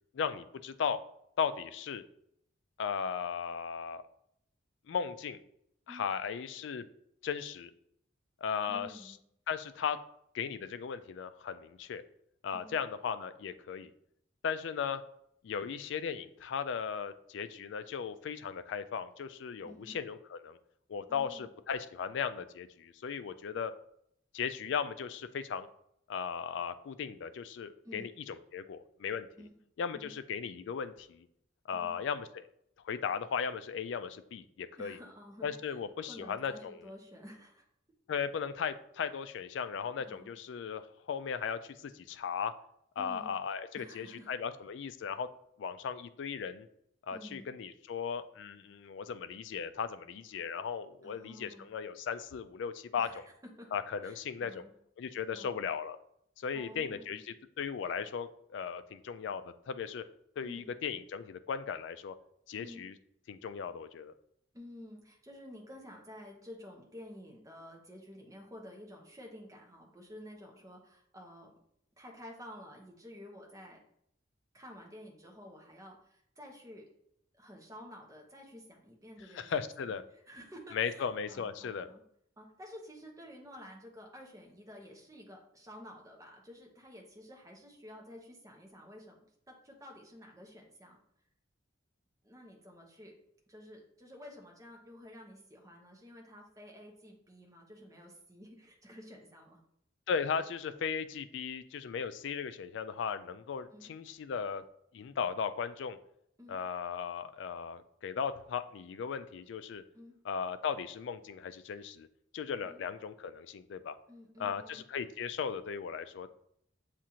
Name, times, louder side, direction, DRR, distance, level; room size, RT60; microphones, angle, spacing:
voice 1, 0.1-1.0 1.4-2.0 2.8-4.0 4.9-5.4 5.9-6.9 7.2-7.7 8.4-9.2 9.5-10.0 10.3-12.0 12.4-13.9 14.4-15.0 15.4-20.6 20.9-23.7 24.3-25.7 26.1-29.3 29.8-31.3 31.7-32.5 32.8-35.0 35.4-36.9 38.1-42.5 43.0-45.3 45.6-46.7 47.1-53.2 53.7-54.6 55.0-56.0 56.4-60.0 60.4-62.2 62.5-62.9 63.3-64.1 79.3-80.0 80.7-81.9 100.1-104.6 104.9-106.0 106.5-109.8 110.2-112.1 112.3-114.0 114.4-116.3, left 6 dB, 70° left, 12 dB, 0.3 m, -37 dB
voice 2, 8.7-9.2 12.5-12.7 19.6-20.0 21.1-21.5 27.8-28.1 29.4-29.5 29.9-30.1 31.7-31.9 34.8-35.8 36.1-37.6 40.0-40.3 43.0-43.3 43.7-44.3 47.1-47.5 51.0-51.7 53.0-53.2 53.6-53.7 54.0-54.7 55.3-55.5 56.5-57.2 60.4-60.7 62.6-62.8 64.5-71.5 72.0-73.8 74.5-76.9 77.3-79.5 79.9-82.0 82.4-89.2 89.5-91.0 92.2-93.1 93.5-99.6 103.7-103.9 106.4-106.6 109.9-110.2 112.6-112.8 114.1-114.8, equal, 15° right, 0 dB, 0.8 m, -51 dB
7.4 x 2.5 x 2.8 m, 0.73 s
head